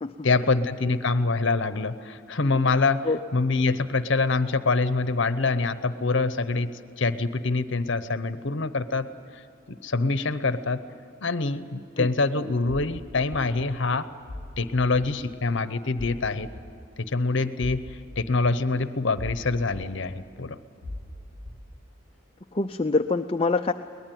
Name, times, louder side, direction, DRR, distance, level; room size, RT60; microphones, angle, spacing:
voice 1, 0.2-6.7 7.0-9.1 9.7-10.8 11.2-14.1 14.6-16.5 17.1-17.8 18.2-20.6, left 3 dB, 60° left, 13 dB, 0.9 m, -25 dB
sound 1, 12.9-13.0 13.3-13.4 14.3-14.5 14.9-15.1 16.0-16.2 16.5-16.6 17.6-17.8 18.2-18.3 19.2-19.4 19.8-19.9 20.8-21.1 21.4-21.6, left 2 dB, 45° right, 6.0 m, -37 dB
voice 2, 22.5-23.7, left 3 dB, 25° left, 6 dB, 0.5 m, -25 dB
23.0 x 19.5 x 9.3 m, 2.7 s
head